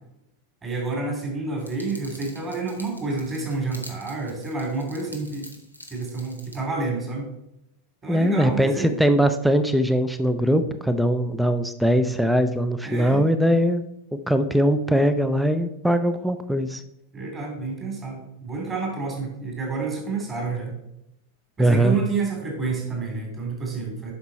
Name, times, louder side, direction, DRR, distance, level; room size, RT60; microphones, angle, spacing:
voice 1, 0.6-5.5 5.9-7.3 8.0-9.0 12.8-13.2 17.1-20.7 21.6-24.1, right 4 dB, 25° right, 0 dB, 3.2 m, -29 dB
sound 1, 1.6-6.6, equal, 90° right, 1.1 m, -46 dB
voice 2, 8.1-13.8 14.3-16.8 21.6-22.0, equal, ahead, 10 dB, 0.5 m, -21 dB
7.9 x 5.9 x 4.2 m, 0.81 s
figure-of-eight pair, 90°, 0 cm